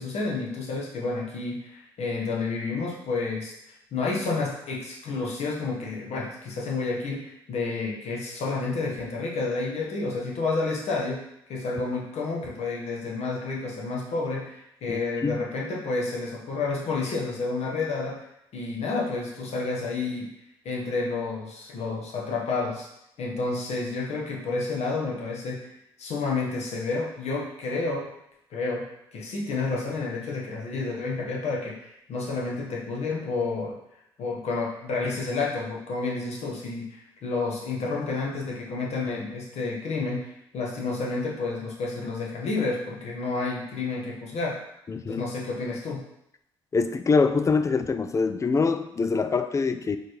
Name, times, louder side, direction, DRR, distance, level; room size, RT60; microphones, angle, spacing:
voice 1, 0.0-3.5 3.9-11.2 11.5-18.2 18.5-20.3 20.6-22.9 23.2-25.7 26.0-28.1 28.5-28.8 29.1-33.8 34.2-44.6 45.1-46.0, left 3 dB, 55° left, -2 dB, 1.2 m, -30 dB
voice 2, 14.9-15.4 44.9-45.2 46.7-50.0, left 4 dB, 25° left, 10 dB, 0.3 m, -24 dB
4.2 x 3.2 x 3.1 m, 0.79 s
hypercardioid pair, 50°, 13 cm